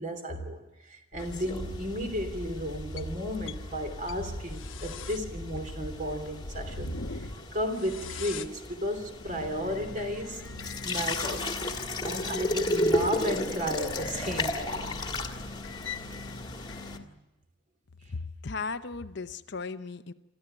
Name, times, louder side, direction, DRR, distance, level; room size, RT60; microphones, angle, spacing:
voice 1, 0.0-10.4 10.8-11.5 12.0-15.0, equal, 40° right, 6 dB, 3.0 m, -34 dB
sound 1, 1.1-17.1, left 3 dB, 80° left, 1.2 m, -42 dB
sound 2, 1.2-17.0, left 1 dB, 20° left, 1.6 m, -35 dB
voice 2, 18.1-20.1, left 4 dB, 60° left, 11 dB, 0.7 m, -36 dB
27.0 x 14.0 x 8.9 m, 1.0 s
head